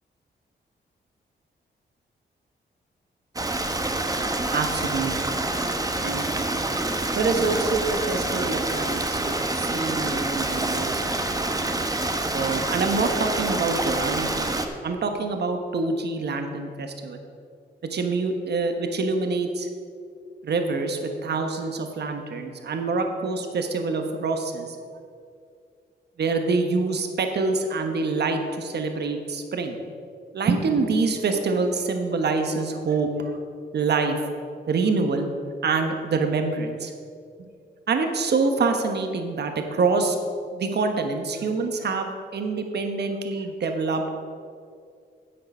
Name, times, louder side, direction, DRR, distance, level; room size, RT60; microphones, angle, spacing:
Stream, 3.4-14.7, right 2 dB, 20° right, 1.0 m, -27 dB
voice 1, 4.5-5.4 6.0-6.3 7.1-11.1 12.3-14.5 14.8-17.2 17.9-19.7 20.4-24.8 26.2-29.8 30.3-33.3 33.7-34.2 34.7-35.3 35.6-36.9 37.9-40.2 40.5-44.1, right 4 dB, 65° right, 5 dB, 1.1 m, -26 dB
10.0 x 7.8 x 5.4 m, 2.3 s
cardioid pair, 85°, 19 cm